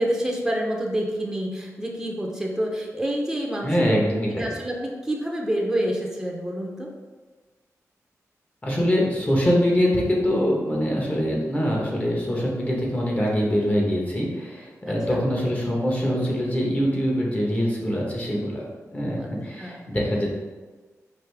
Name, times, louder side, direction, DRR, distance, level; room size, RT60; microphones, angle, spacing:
voice 1, 0.0-3.9 4.4-6.9 14.8-15.2 19.0-19.3 19.6-19.9, right 1 dB, 5° right, -1 dB, 0.7 m, -28 dB
voice 2, 3.6-4.5 8.6-20.3, equal, 25° left, -3 dB, 1.2 m, -24 dB
4.9 x 2.7 x 3.4 m, 1.3 s
cardioid pair, 80°, 6 cm